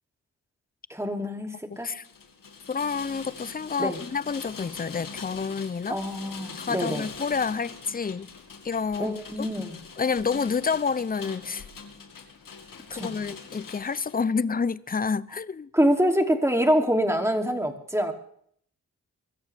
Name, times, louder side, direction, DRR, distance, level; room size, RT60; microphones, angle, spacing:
voice 1, 0.9-1.9 3.8-4.0 5.9-7.1 9.0-9.8 12.9-13.2 15.7-18.1, equal, 10° right, 2.9 m, -25 dB
voice 2, 1.7-2.0 2.7-6.0 6.6-8.3 8.6-9.1 10.0-11.6 12.9-15.7, left 5 dB, 25° left, 0.6 m, -29 dB
Rain, 1.8-14.2, left 5 dB, 80° left, 2.0 m, -43 dB
23.0 x 14.0 x 3.5 m
cardioid pair, 45°, 33 cm